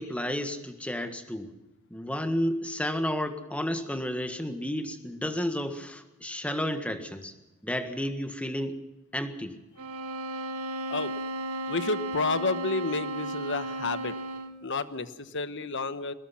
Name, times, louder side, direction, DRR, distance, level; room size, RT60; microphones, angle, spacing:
voice 1, 0.0-1.5 1.9-7.3 7.6-8.8 9.1-9.6, equal, 5° left, 7 dB, 1.6 m, -31 dB
sound 1, 9.8-14.7, right 1 dB, 85° right, 1.7 m, -34 dB
voice 2, 11.7-14.2 14.6-16.1, left 3 dB, 55° left, 12 dB, 1.2 m, -30 dB
23.0 x 19.5 x 5.8 m, 0.99 s
head